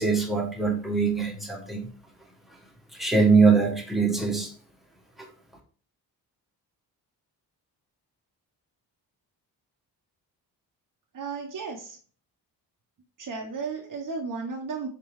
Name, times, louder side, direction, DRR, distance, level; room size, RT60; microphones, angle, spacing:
voice 1, 0.0-1.9 3.0-4.5, right 4 dB, ahead, 0 dB, 1.1 m, -22 dB
voice 2, 11.1-12.0 13.2-14.9, right 4 dB, 45° right, 0 dB, 0.9 m, -34 dB
4.1 x 3.7 x 3.0 m, 0.43 s
supercardioid pair, 55°, 44 cm